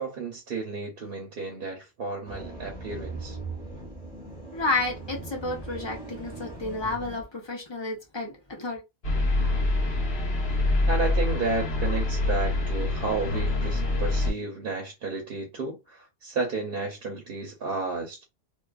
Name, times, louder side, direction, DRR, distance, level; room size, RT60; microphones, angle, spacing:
voice 1, 0.0-3.4 10.9-18.2, right 3 dB, 60° right, 0.8 m, -32 dB
sound 1, 2.2-7.2, right 2 dB, 10° left, 1.0 m, -39 dB
voice 2, 4.5-8.8, left 3 dB, 30° left, 0.7 m, -31 dB
sound 2, 9.0-14.3, left 2 dB, 70° left, 1.2 m, -25 dB
2.5 x 2.4 x 2.3 m
omnidirectional pair, 1.1 m